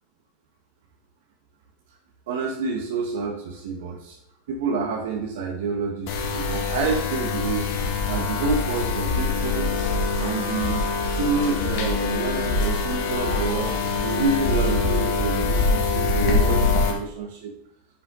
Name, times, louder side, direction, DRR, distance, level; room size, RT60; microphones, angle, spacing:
voice 1, 2.3-4.2 4.5-7.7 8.1-9.7 10.2-17.5, right 4 dB, 75° right, 0 dB, 1.7 m, -28 dB
sound 1, 6.1-16.9, left 3 dB, 55° left, 2.3 m, -24 dB
10.5 x 5.7 x 4.1 m, 0.78 s
supercardioid pair, 145°, 0 cm